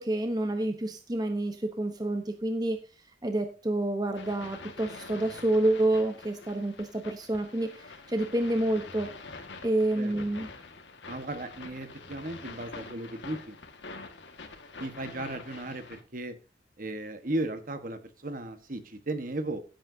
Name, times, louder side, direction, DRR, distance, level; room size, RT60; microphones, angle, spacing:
voice 1, 0.0-2.8 3.2-9.1 9.6-10.5, right 1 dB, 20° right, 6 dB, 1.0 m, -28 dB
sound 1, 4.1-16.0, left 3 dB, 85° left, 1.9 m, -46 dB
voice 2, 11.1-13.6 14.8-16.3 16.8-19.6, right 2 dB, 50° right, 9 dB, 1.5 m, -36 dB
16.0 x 8.7 x 2.8 m, 0.35 s
head